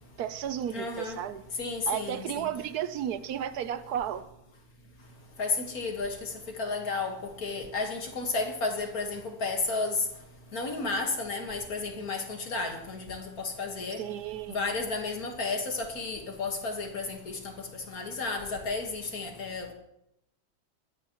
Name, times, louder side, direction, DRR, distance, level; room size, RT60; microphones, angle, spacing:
voice 1, 0.2-1.4 1.9-4.3 14.0-14.6, right 10 dB, 80° right, 13 dB, 1.3 m, -33 dB
voice 2, 0.7-1.2 1.6-2.5 5.4-6.3 6.6-7.1 7.4-9.9 10.5-14.0 14.5-17.4 17.9-19.7, left 3 dB, 70° left, 3 dB, 2.1 m, -32 dB
20.5 x 16.0 x 3.0 m, 0.84 s
omnidirectional pair, 1.6 m